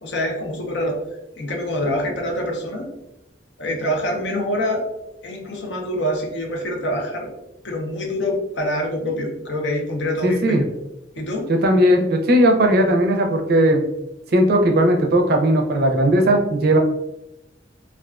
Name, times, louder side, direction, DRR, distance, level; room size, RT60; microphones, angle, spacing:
voice 1, 0.0-1.0 1.4-2.9 3.6-4.9 5.2-7.3 7.6-10.7 11.2-11.5, left 1 dB, 70° left, 1 dB, 0.6 m, -25 dB
voice 2, 10.2-10.6 11.5-13.8 14.3-16.8, right 1 dB, 55° right, 3 dB, 0.4 m, -17 dB
2.3 x 2.2 x 2.3 m, 0.88 s
head